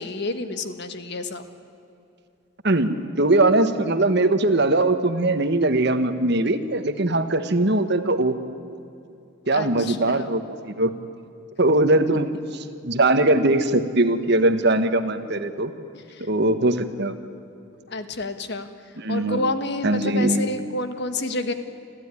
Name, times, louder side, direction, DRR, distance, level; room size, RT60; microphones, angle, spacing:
voice 1, 0.0-1.5 9.5-10.3 15.9-16.3 17.9-18.7 19.1-21.5, left 2 dB, 55° left, 9 dB, 1.4 m, -29 dB
voice 2, 2.6-8.4 9.5-10.9 11.6-15.7 16.3-17.2 19.0-19.4 19.8-20.5, right 2 dB, 50° right, 9 dB, 1.3 m, -21 dB
26.5 x 15.0 x 9.8 m, 2.7 s
head